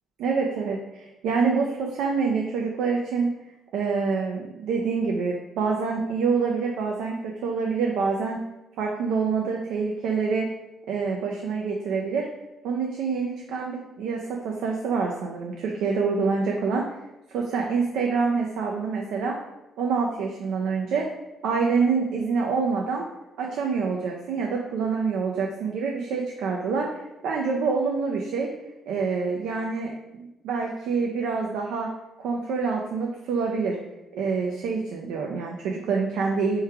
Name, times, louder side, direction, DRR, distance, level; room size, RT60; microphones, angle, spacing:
voice 1, 0.2-3.3 3.7-8.4 8.8-10.5 10.9-12.3 12.6-16.9 17.3-19.4 19.8-21.1 21.4-23.0 23.4-28.5 28.9-29.9 30.4-31.9 32.2-33.8 34.1-36.6, right 5 dB, 85° right, 0 dB, 0.5 m, -26 dB
3.3 x 3.1 x 4.7 m, 0.96 s
cardioid pair, 90°, 0 cm